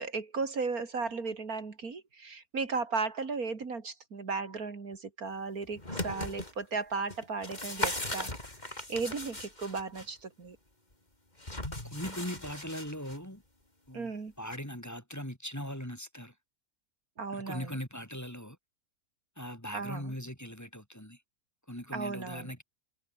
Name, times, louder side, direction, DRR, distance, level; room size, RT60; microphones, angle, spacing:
voice 1, 0.0-8.3 8.6-10.6 13.9-14.3 17.2-17.7 19.7-20.1 21.9-22.5, right 4 dB, 70° right, 2.9 m, -35 dB
sound 1, 5.6-6.5 7.1-10.1 11.4-13.2 14.5-14.6, left 1 dB, 25° left, 4.7 m, -38 dB
voice 2, 11.8-13.4 13.9-16.3 17.3-18.6 19.4-21.2 21.7-22.6, equal, 10° left, 4.2 m, -40 dB
omnidirectional pair, 1.6 m